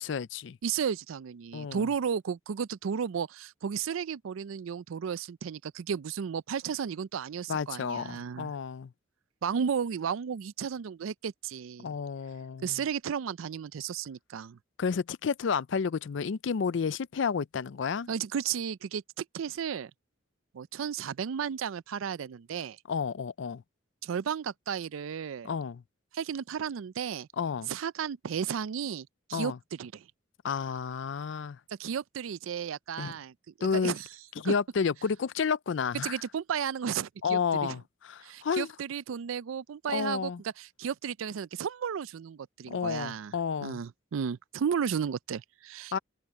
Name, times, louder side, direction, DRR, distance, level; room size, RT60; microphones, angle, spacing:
voice 1, 0.0-0.6 1.5-1.9 7.5-8.9 11.8-12.8 14.8-18.1 22.9-23.6 25.4-25.8 27.4-27.7 29.3-29.6 30.4-31.6 33.0-33.1 33.6-33.9 34.4-36.2 37.2-38.7 39.9-40.4 42.7-43.8 45.9-46.0, left 6 dB, 65° left, 0.4 m, -31 dB
voice 2, 0.6-8.5 9.4-11.9 12.6-14.6 18.1-19.9 20.5-22.8 24.0-25.5 26.1-27.3 27.7-30.0 31.8-34.1 34.4-34.5 36.0-37.8 38.2-43.4 43.6-46.0, right 7 dB, 85° right, 0.4 m, -34 dB
head